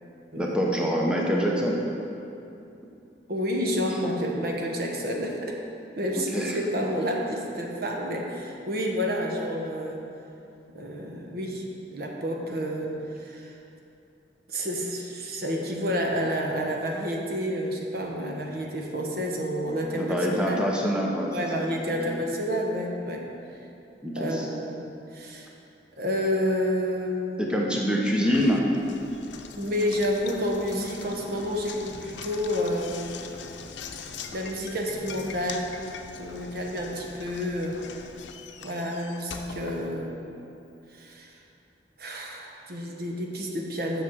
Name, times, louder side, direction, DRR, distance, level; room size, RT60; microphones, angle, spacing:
voice 1, 0.4-1.8 6.1-6.5 19.9-21.6 24.0-24.5 27.4-28.7, equal, 5° right, -2 dB, 0.8 m, -25 dB
voice 2, 3.3-5.6 6.0-10.0 10.7-13.6 14.5-20.2 20.5-20.6 21.3-23.3 24.1-24.8 25.1-25.5 26.0-27.5 29.6-33.1 34.3-35.8 36.2-37.8 38.6-40.1 40.9-41.4 42.0-44.0, equal, 60° right, 0 dB, 1.1 m, -29 dB
Knock, 28.3-40.5, left 5 dB, 90° left, 0.6 m, -42 dB
7.3 x 6.9 x 6.2 m, 2.7 s
head